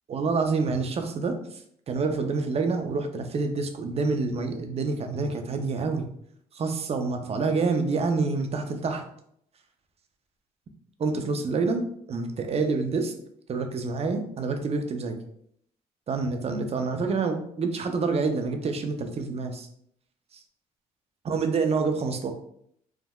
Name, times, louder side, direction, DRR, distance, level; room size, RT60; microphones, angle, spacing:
voice 1, 0.1-6.1 6.5-9.0 11.0-13.1 13.5-15.2 16.1-19.7 20.3-20.4 21.2-22.3, right 4 dB, 40° right, 5 dB, 0.5 m, -27 dB
3.5 x 2.1 x 2.3 m, 0.69 s
supercardioid pair, 65°, 16 cm